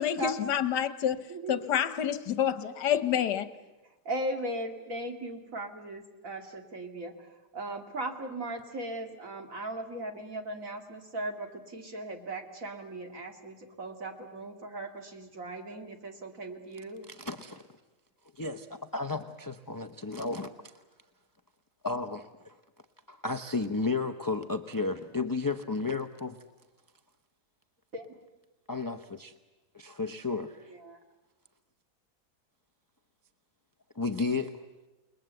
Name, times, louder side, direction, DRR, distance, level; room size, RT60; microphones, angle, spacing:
voice 1, 0.0-3.5, left 9 dB, 80° left, 1.6 m, -28 dB
voice 2, 1.3-1.7 4.0-17.1 27.9-28.1 30.7-31.0, right 1 dB, 50° right, 2.6 m, -38 dB
voice 3, 17.1-17.6 18.4-20.5 21.8-22.5 23.1-26.4 28.7-29.3 29.7-30.7 34.0-34.6, left 3 dB, 25° left, 0.4 m, -33 dB
29.0 x 20.5 x 8.0 m
omnidirectional pair, 1.8 m